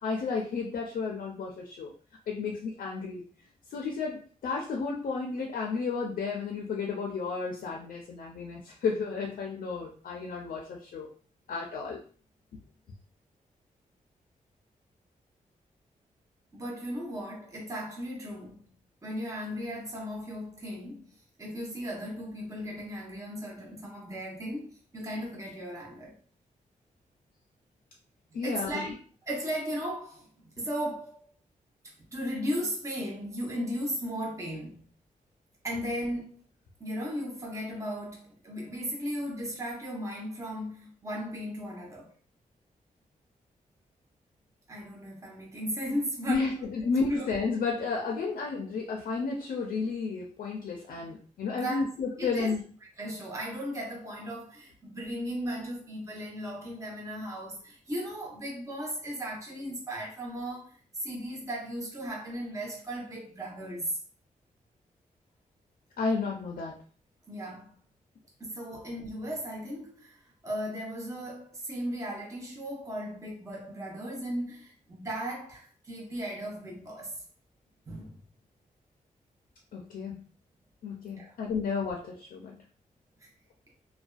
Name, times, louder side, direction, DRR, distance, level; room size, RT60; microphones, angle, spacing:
voice 1, 0.0-1.9 2.3-3.2 3.7-11.1 11.5-12.0 28.3-28.8 46.3-52.6 66.0-66.7 79.7-80.2 80.8-82.5, left 4 dB, 80° left, 0.5 m, -32 dB
voice 2, 16.5-18.7 19.0-21.1 21.4-26.2 28.4-29.0 29.3-31.2 32.1-34.9 35.6-36.4 36.8-42.1 44.7-46.5 47.1-47.3 51.5-51.8 52.2-52.5 52.8-64.0 67.3-67.8 68.4-77.2 77.9-78.2 81.2-81.3 83.2-83.3, equal, 20° right, 0.8 m, -36 dB
2.5 x 2.2 x 2.3 m
wide cardioid pair, 105°, 14 cm